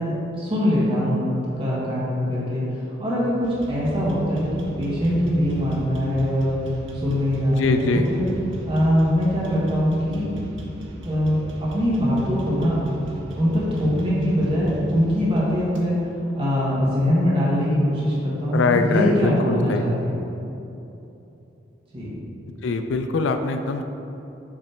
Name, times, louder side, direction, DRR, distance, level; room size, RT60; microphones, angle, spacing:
voice 1, 0.0-1.3 1.6-2.6 3.0-6.6 6.9-8.2 8.6-10.4 11.0-12.8 13.3-16.0 16.3-20.2 21.9-22.1, equal, 30° right, -8 dB, 1.5 m, -22 dB
sound 1, 3.4-15.9, equal, 85° right, 0.9 m, -38 dB
voice 2, 7.5-8.1 18.5-19.8 22.6-23.8, left 3 dB, 85° left, 7 dB, 0.4 m, -22 dB
8.5 x 3.2 x 4.3 m, 2.9 s
head